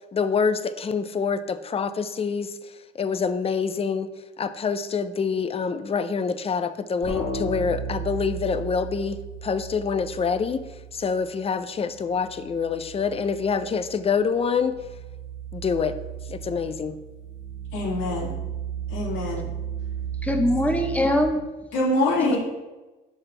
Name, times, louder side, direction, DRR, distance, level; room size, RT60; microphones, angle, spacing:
voice 1, 0.1-4.1 4.4-10.6 10.9-14.8 15.5-16.0 16.3-17.0, left 5 dB, 30° left, 11 dB, 0.5 m, -26 dB
sound 1, 7.0-11.4 11.7-21.3, right 6 dB, 65° left, 1.6 m, -35 dB
voice 2, 17.7-18.3 18.9-19.5 21.7-22.4, left 2 dB, 85° left, -6 dB, 2.6 m, -24 dB
voice 3, 20.2-21.4, left 1 dB, 5° left, 4 dB, 0.9 m, -22 dB
11.0 x 4.1 x 3.4 m, 1.1 s
cardioid pair, 90°, 20 cm